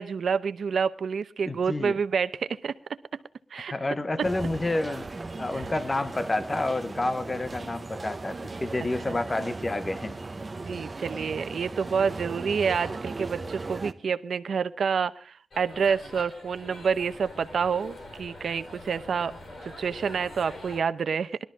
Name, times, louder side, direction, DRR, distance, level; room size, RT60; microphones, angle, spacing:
voice 1, 0.0-2.7 3.5-3.7 9.1-9.2 10.6-19.3 19.8-21.4, right 6 dB, 70° right, 0.8 m, -28 dB
voice 2, 1.5-2.0 3.7-5.1 5.4-10.1, left 2 dB, 20° left, 0.6 m, -29 dB
sound 1, 4.2-13.9, right 3 dB, 25° right, 0.9 m, -37 dB
sound 2, 15.5-20.8, left 1 dB, 55° left, 4.7 m, -44 dB
20.5 x 12.5 x 3.6 m
wide cardioid pair, 175°, 0 cm